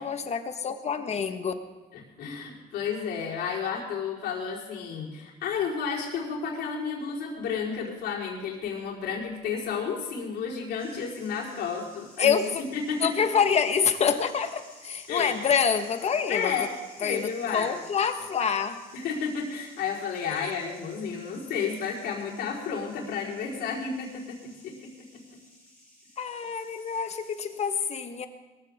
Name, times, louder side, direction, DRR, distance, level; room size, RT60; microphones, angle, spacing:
voice 1, 0.0-1.5 12.2-12.6 13.0-16.6 17.0-18.8 20.3-20.5 26.2-28.3, left 6 dB, 40° left, 7 dB, 1.5 m, -26 dB
voice 2, 1.9-12.4 12.7-13.2 15.1-15.4 16.3-16.7 17.0-17.7 18.9-25.2, left 6 dB, 75° left, -3 dB, 4.6 m, -32 dB
sound 1, 10.8-27.7, left 1 dB, 5° left, 6.3 m, -54 dB
21.5 x 15.5 x 3.7 m, 1.2 s
cardioid pair, 110°, 17 cm